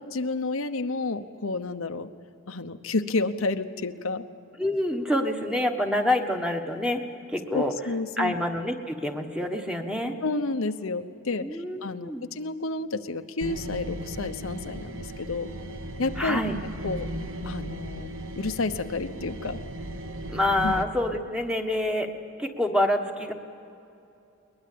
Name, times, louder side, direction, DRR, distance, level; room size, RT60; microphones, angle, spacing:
voice 1, 0.1-2.1 2.5-4.3 7.5-8.3 10.2-15.5 16.0-16.4 16.8-17.1 17.4-18.1 18.3-19.6 20.6-20.8, left 3 dB, 80° left, 8 dB, 0.9 m, -30 dB
voice 2, 4.6-7.0 7.3-10.1 11.4-12.3 16.2-16.5 20.3-22.1 22.4-23.3, left 1 dB, 5° right, 4 dB, 1.4 m, -27 dB
sound 1, 13.4-20.8, right 1 dB, 70° right, 1.0 m, -36 dB
22.0 x 20.5 x 8.6 m, 2.7 s
head